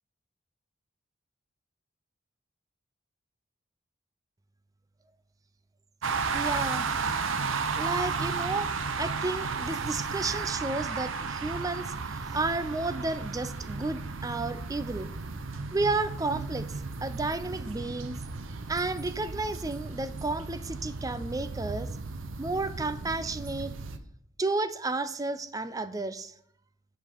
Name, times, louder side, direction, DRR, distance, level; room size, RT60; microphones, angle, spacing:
sound 1, 6.0-24.0, right 4 dB, 85° right, 0.7 m, -34 dB
voice 1, 6.3-7.1 7.8-8.7 9.0-15.1 15.7-16.7 17.0-18.2 18.7-21.9 22.4-23.7 24.4-26.3, right 3 dB, 15° right, 13 dB, 0.4 m, -32 dB
9.9 x 5.8 x 5.1 m, 0.68 s
head